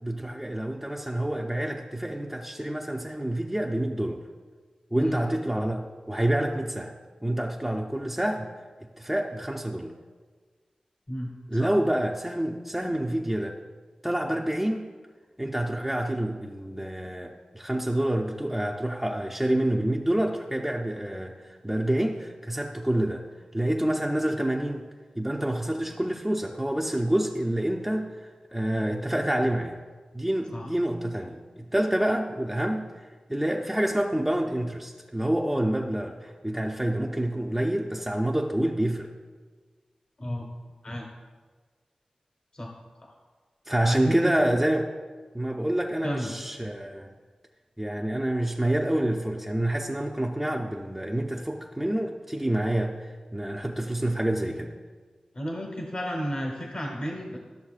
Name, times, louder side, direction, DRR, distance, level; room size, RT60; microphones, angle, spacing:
voice 1, 0.0-4.2 4.9-6.9 7.2-8.5 9.0-9.9 11.5-13.6 14.0-14.9 15.4-23.3 23.5-24.8 25.2-29.8 30.1-32.9 33.3-39.1 43.7-44.9 45.3-47.1 47.8-54.8, right 1 dB, 10° right, 0 dB, 0.5 m, -27 dB
voice 2, 43.9-44.3 46.0-46.4 55.3-57.4, equal, 45° left, 1 dB, 1.0 m, -32 dB
13.0 x 6.7 x 2.4 m, 1.4 s
wide cardioid pair, 80°, 2 cm